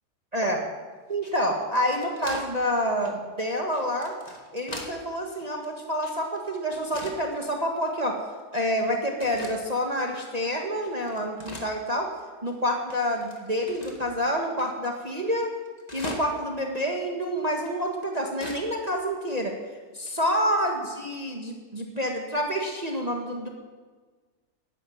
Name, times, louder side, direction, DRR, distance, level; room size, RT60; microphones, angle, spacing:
voice 1, 0.3-0.6 1.1-4.1 4.5-8.2 8.5-12.1 12.4-15.5 15.9-19.5 19.9-23.5, equal, 25° right, 1 dB, 1.6 m, -28 dB
sound 1, 1.1-2.5 3.0-3.2 3.7-5.0 5.3-6.4 6.7-7.2 7.8-7.9 8.5-8.9 9.2-9.6 10.1-10.2 10.6-12.2 12.5-12.6 12.9-14.1 14.6-14.7 15.0-15.1 15.2-16.5 16.8-16.9 17.6-18.6 18.9-19.0 19.3-19.4 20.1-20.3, left 1 dB, 25° left, 1.9 m, -41 dB
13.0 x 10.5 x 9.3 m, 1.4 s
omnidirectional pair, 1.7 m